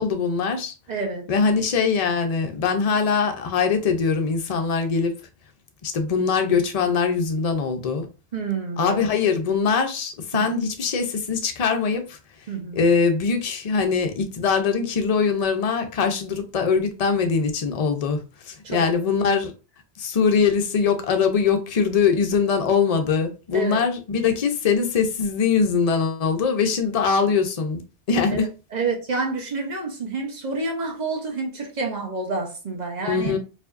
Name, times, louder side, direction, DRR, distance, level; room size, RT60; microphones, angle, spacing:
voice 1, 0.0-0.7 1.3-5.1 5.8-8.1 8.8-12.2 12.7-19.5 20.0-27.8 28.1-28.5 33.0-33.4, left 5 dB, 45° left, 0.6 m, -22 dB
voice 2, 0.9-1.3 8.3-9.1 10.3-10.5 12.5-12.8 18.6-18.8 23.5-23.8 28.3-33.3, right 3 dB, 40° right, 1.0 m, -28 dB
4.6 x 2.5 x 2.5 m
omnidirectional pair, 1.2 m